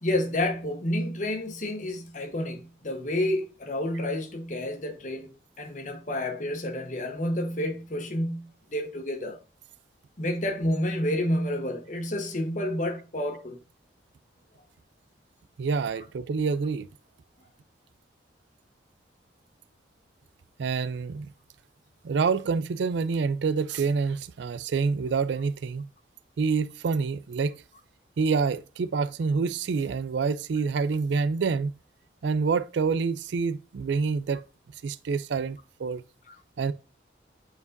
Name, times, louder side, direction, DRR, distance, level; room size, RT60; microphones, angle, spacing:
voice 1, 0.0-9.4 10.2-13.6 36.3-36.4, left 1 dB, 40° left, 1.0 m, -30 dB
voice 2, 15.6-16.9 20.6-21.3 22.0-25.9 26.4-27.5 28.2-31.7 32.2-34.4 34.8-36.0 36.6-36.7, right 5 dB, 70° right, 0.4 m, -27 dB
8.3 x 4.6 x 2.6 m
head